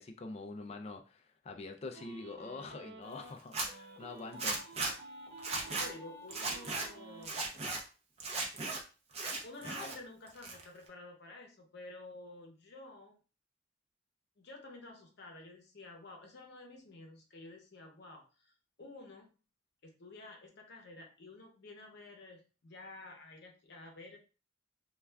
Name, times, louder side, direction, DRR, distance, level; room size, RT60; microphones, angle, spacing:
voice 1, 0.0-4.6, left 3 dB, 35° left, 4 dB, 0.3 m, -45 dB
sound 1, 1.9-3.3 3.7-7.3, right 2 dB, 65° right, 0.8 m, -51 dB
Zipper (clothing), 3.4-3.7 4.4-4.9 5.4-5.9 6.3-6.9 7.2-7.8 8.2-8.8 9.1-10.0 10.3-10.9, right 3 dB, 35° right, 0.6 m, -36 dB
voice 2, 5.7-7.5 9.4-13.2 14.4-19.3 19.8-24.2, left 2 dB, 60° left, 2 dB, 0.8 m, -51 dB
2.3 x 2.3 x 3.2 m, 0.35 s
head